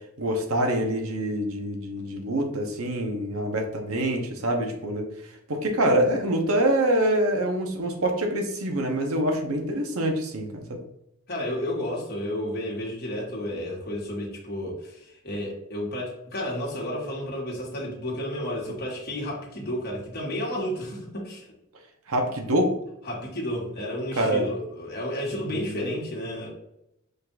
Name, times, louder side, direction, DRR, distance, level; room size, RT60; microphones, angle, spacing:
voice 1, 0.2-5.1 5.5-10.8 22.1-22.7 24.2-24.5 25.5-25.8, right 1 dB, 80° right, 3 dB, 0.9 m, -25 dB
voice 2, 11.3-21.5 23.0-26.5, left 1 dB, 50° left, -2 dB, 1.6 m, -32 dB
5.2 x 2.5 x 4.0 m, 0.82 s
head